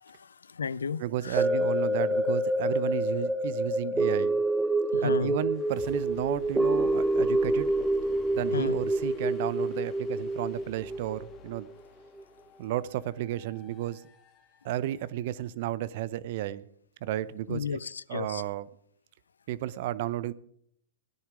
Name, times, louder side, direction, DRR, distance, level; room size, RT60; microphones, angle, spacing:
voice 1, 0.0-1.4 4.9-5.3 8.5-8.8 17.5-18.4, left 6 dB, 85° left, 0.5 m, -34 dB
voice 2, 1.0-4.4 5.0-7.7 8.3-11.7 12.6-14.0 14.6-16.6 17.0-17.7 18.1-18.7 19.5-20.3, right 13 dB, 55° right, 0.7 m, -33 dB
sound 1, 1.4-11.7 12.2-12.3, right 1 dB, 5° right, 0.8 m, -27 dB
sound 2, 5.5-15.2, left 5 dB, 30° left, 2.3 m, -52 dB
16.5 x 10.0 x 4.9 m
hypercardioid pair, 125°, 0 cm